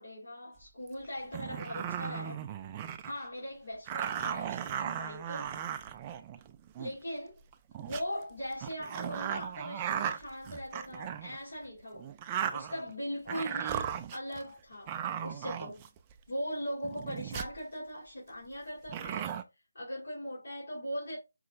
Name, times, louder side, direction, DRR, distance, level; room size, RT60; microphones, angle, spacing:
voice 1, 0.0-2.4 3.0-5.8 6.8-7.4 7.8-12.2 12.5-15.9 16.3-19.3 19.7-21.2, equal, 55° left, 2.5 m, -40 dB
sound 1, 0.9-1.0 1.3-3.2 3.9-6.9 7.5-8.0 8.6-11.4 12.0-12.9 13.3-14.4 14.9-16.1 16.8-17.6 18.9-19.4, right 9 dB, 20° right, 0.3 m, -37 dB
5.2 x 2.9 x 2.5 m
figure-of-eight pair, 150°, 0 cm